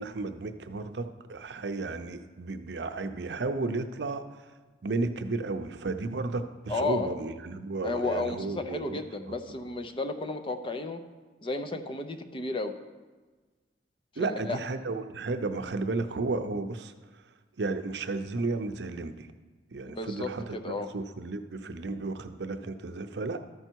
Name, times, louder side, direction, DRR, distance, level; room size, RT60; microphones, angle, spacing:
voice 1, 0.0-4.2 4.8-9.0 9.3-9.6 14.2-16.9 17.6-19.3 19.7-23.4, right 3 dB, 75° right, 8 dB, 0.6 m, -33 dB
voice 2, 6.7-7.1 7.8-11.0 11.4-12.7 14.2-14.6 19.9-20.9, left 3 dB, 30° left, 7 dB, 0.6 m, -33 dB
13.5 x 5.6 x 4.5 m, 1.3 s
head